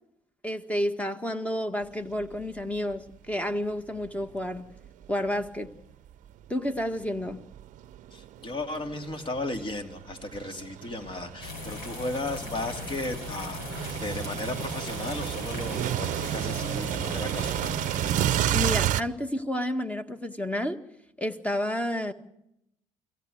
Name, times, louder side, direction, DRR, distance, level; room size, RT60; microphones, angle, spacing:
voice 1, 0.4-4.7 5.1-5.7 6.5-7.4 18.5-20.8 21.2-22.1, left 1 dB, 10° left, 8 dB, 1.7 m, -30 dB
sound 1, 2.2-2.4 2.9-3.0 4.0-5.7 6.3-19.0, right 12 dB, 55° right, 0.8 m, -32 dB
voice 2, 8.1-17.8, left 2 dB, 35° left, 6 dB, 2.7 m, -35 dB
sound 2, 11.4-18.7, left 3 dB, 75° left, 4.7 m, -39 dB
23.5 x 16.5 x 8.0 m, 0.81 s
hypercardioid pair, 65°, 15 cm